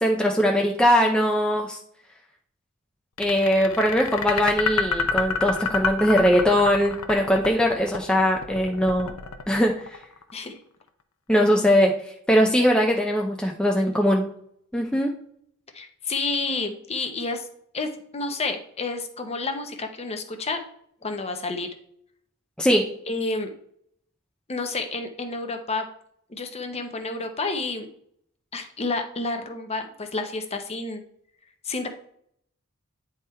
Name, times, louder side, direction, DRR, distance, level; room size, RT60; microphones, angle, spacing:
voice 1, 0.0-1.8 3.2-9.1 9.5-9.8 11.3-11.9 12.3-14.3 14.7-15.1 22.6-22.9, equal, 5° left, 0 dB, 0.6 m, -21 dB
sound 1, 3.2-10.3, left 5 dB, 75° left, 0.7 m, -28 dB
voice 2, 15.7-17.5 17.7-20.6 21.0-21.7 23.1-23.5 24.5-25.9 26.3-27.9 28.5-31.0 31.6-31.9, left 3 dB, 30° left, 5 dB, 0.9 m, -30 dB
9.6 x 3.6 x 4.3 m, 0.67 s
head